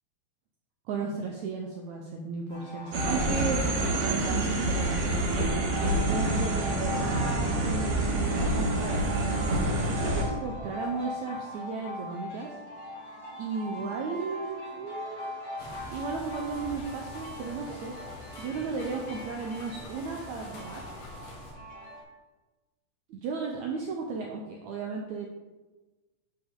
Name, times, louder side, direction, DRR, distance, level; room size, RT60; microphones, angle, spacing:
voice 1, 0.9-9.0 9.8-12.5 13.4-15.3 15.9-17.9 18.4-20.9 23.1-25.3, right 4 dB, 80° right, 1 dB, 1.6 m, -35 dB
sound 1, 2.5-22.0, left 1 dB, 50° left, 2.7 m, -42 dB
sound 2, 2.9-10.2, right 1 dB, 55° right, 2.5 m, -27 dB
sound 3, 15.6-21.5, left 2 dB, 75° left, 3.3 m, -45 dB
10.0 x 5.1 x 3.7 m, 1.2 s
omnidirectional pair, 4.1 m